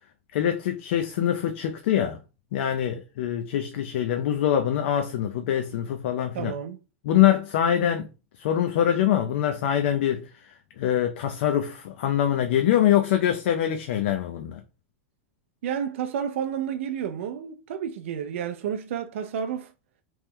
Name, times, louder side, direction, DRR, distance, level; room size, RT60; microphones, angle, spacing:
voice 1, 0.3-2.2 2.5-6.5 7.0-8.1 8.4-10.3 10.8-14.6, left 10 dB, 65° left, 0.4 m, -24 dB
voice 2, 6.3-6.8 15.6-19.7, right 8 dB, 80° right, 0.3 m, -31 dB
3.0 x 2.1 x 3.5 m
supercardioid pair, 150°, 7 cm